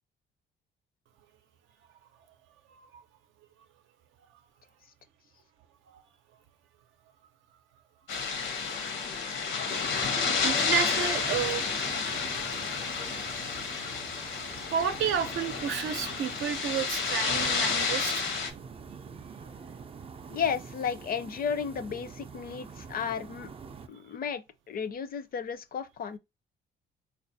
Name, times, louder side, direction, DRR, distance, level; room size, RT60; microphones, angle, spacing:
voice 1, 2.7-3.0 5.9-6.0 9.7-11.6 14.7-18.3 19.4-19.5, right 8 dB, 75° right, 0.6 m, -31 dB
sound 1, 8.1-18.5, left 5 dB, 80° left, 0.8 m, -31 dB
sound 2, 9.8-23.9, right 5 dB, 30° right, 0.4 m, -45 dB
voice 2, 20.3-23.5 23.9-26.2, left 7 dB, 50° left, 0.5 m, -33 dB
4.0 x 2.4 x 2.6 m
cardioid pair, 90°, 20 cm